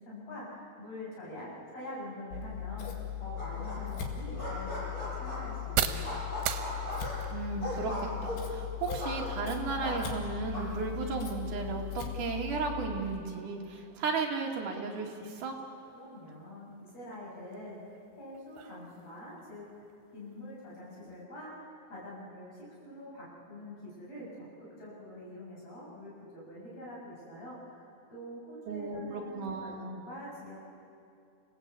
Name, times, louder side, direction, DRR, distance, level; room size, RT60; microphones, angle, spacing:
voice 1, 0.0-6.2 15.9-19.6 20.1-30.6, left 1 dB, 40° left, -6 dB, 8.6 m, -45 dB
Scissors, 2.3-13.0, left 10 dB, 70° left, 4.1 m, -39 dB
sound 1, 3.4-4.0 4.3-5.6 6.0-9.5 9.8-10.6, equal, 20° left, 6.7 m, -38 dB
sound 2, 3.6-21.2, right 10 dB, 85° right, 3.3 m, -43 dB
voice 2, 7.3-15.6 28.7-29.9, right 4 dB, 55° right, -1 dB, 3.7 m, -35 dB
29.5 x 17.5 x 8.5 m, 2.5 s
omnidirectional pair, 4.8 m